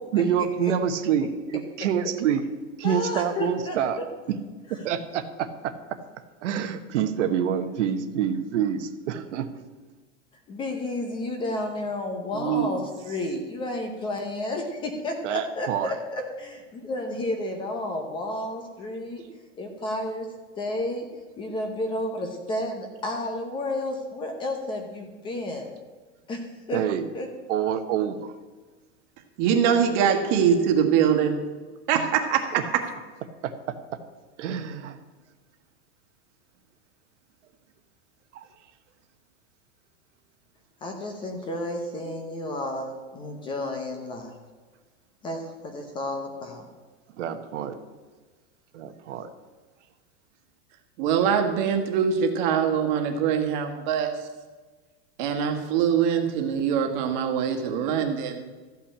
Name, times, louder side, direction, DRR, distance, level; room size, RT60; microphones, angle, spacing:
voice 1, 0.1-2.4 2.8-4.0 4.8-5.2 5.6-5.7 6.4-9.5 15.2-15.9 26.7-27.1 27.5-28.3 31.9-32.1 32.5-32.6 34.4-35.0 47.2-47.8 48.7-49.3, right 8 dB, 75° right, 8 dB, 1.2 m, -26 dB
voice 2, 2.8-3.8 10.5-19.2 19.6-20.3 20.6-21.1 21.4-25.7 26.3-26.8 27.1-27.3 40.8-44.3 45.2-46.7, left 1 dB, 15° left, 4 dB, 0.8 m, -31 dB
voice 3, 12.3-12.8 29.4-31.4 31.9-32.4 51.0-54.1 55.2-58.5, right 7 dB, 40° right, 4 dB, 1.5 m, -23 dB
13.5 x 5.7 x 8.6 m, 1.3 s
supercardioid pair, 180°, 36 cm